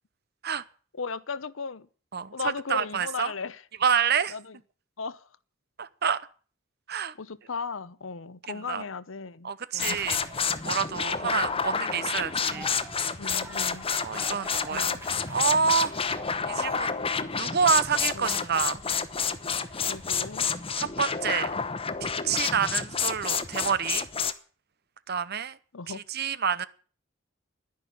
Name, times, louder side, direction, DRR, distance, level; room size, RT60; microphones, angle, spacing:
voice 1, 0.9-1.9 2.3-3.6 4.3-4.6 5.0-5.3 7.2-10.1 11.2-11.4 13.2-13.9 14.7-15.1 18.1-18.3 19.9-20.5 25.7-26.0, left 5 dB, 85° left, 0.8 m, -36 dB
voice 2, 2.7-3.3 3.8-4.3 5.8-6.2 6.9-7.1 8.7-8.8 9.4-10.2 10.6-12.8 14.0-15.0 15.3-15.9 16.5-17.0 17.4-18.8 20.8-21.5 22.0-24.1 25.1-25.6 25.9-26.7, right 6 dB, 55° right, 0.9 m, -27 dB
sound 1, 9.8-24.3, left 6 dB, 30° left, 0.9 m, -29 dB
sound 2, 9.9-21.9, right 1 dB, 15° right, 2.1 m, -49 dB
11.0 x 10.5 x 9.7 m
head